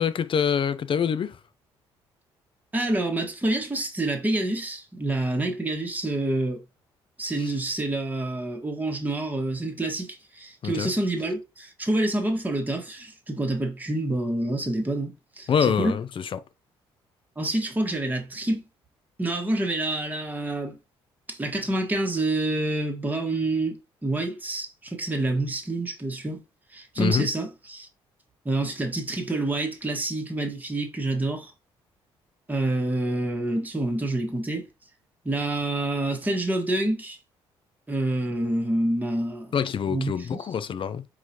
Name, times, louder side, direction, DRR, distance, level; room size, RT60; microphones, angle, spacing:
voice 1, 0.0-1.4 7.4-7.5 10.6-10.9 15.5-16.4 27.0-27.3 39.5-41.1, left 7 dB, 40° left, 0.5 m, -25 dB
voice 2, 2.7-6.6 7.2-16.0 17.4-18.6 19.2-20.8 21.3-23.7 24.0-26.4 26.7-27.9 28.4-31.5 32.5-34.7 35.2-37.2 37.9-39.5 39.9-40.3, right 2 dB, 15° right, 1.2 m, -27 dB
4.6 x 3.0 x 2.8 m
hypercardioid pair, 50°, 13 cm